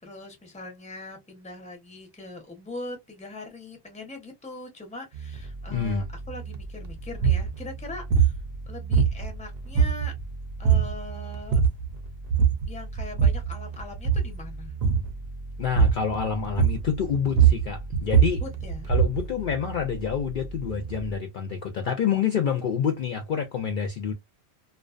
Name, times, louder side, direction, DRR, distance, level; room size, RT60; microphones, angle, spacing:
voice 1, 0.0-8.3 8.7-10.1 10.6-11.6 12.7-14.7 18.4-18.9, left 2 dB, 10° left, 0.7 m, -41 dB
sound 1, 5.1-21.2, right 3 dB, 55° right, 0.5 m, -39 dB
voice 2, 5.7-6.1 15.6-18.4 18.9-24.1, left 7 dB, 60° left, 0.6 m, -27 dB
sound 2, 7.1-7.5 8.1-8.4 8.9-9.4 9.7-10.2 10.6-11.0 11.3-11.9 12.3-12.7 13.0-13.5 13.9-14.3 14.8-15.1 15.8-16.1 16.6-16.9 17.2-19.3, right 7 dB, 80° right, 0.9 m, -21 dB
2.4 x 2.2 x 2.4 m
omnidirectional pair, 1.1 m